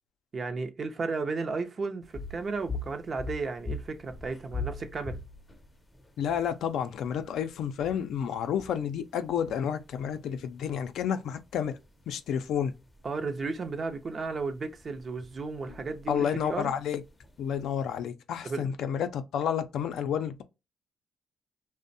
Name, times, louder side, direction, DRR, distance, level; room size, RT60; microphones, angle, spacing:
voice 1, 0.3-5.2 13.0-16.7 18.4-18.7, right 4 dB, 40° right, 0.5 m, -34 dB
sound 1, 2.0-17.9, left 3 dB, 15° left, 0.5 m, -44 dB
voice 2, 6.2-11.8 12.1-12.7 16.1-17.0 17.4-20.4, left 8 dB, 75° left, 0.4 m, -30 dB
2.5 x 2.0 x 2.6 m
cardioid pair, 90°, 0 cm